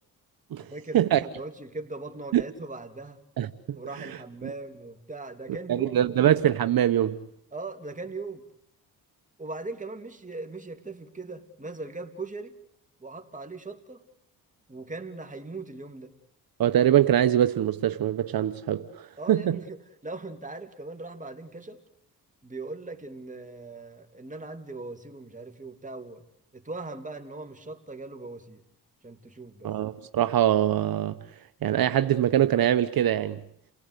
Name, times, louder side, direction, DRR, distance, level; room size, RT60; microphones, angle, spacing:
voice 1, 0.6-3.2 3.7-6.2 7.5-8.4 9.4-12.6 13.0-14.0 14.7-16.1 19.2-19.8 20.0-21.8 22.4-26.2 26.5-28.6 29.0-29.7, right 3 dB, 20° right, 3.0 m, -39 dB
voice 2, 3.4-4.1 4.4-4.5 5.7-7.2 16.6-19.6 29.6-31.2 31.6-33.4, right 11 dB, 65° right, 1.0 m, -23 dB
29.0 x 18.0 x 8.3 m
cardioid pair, 65°, 38 cm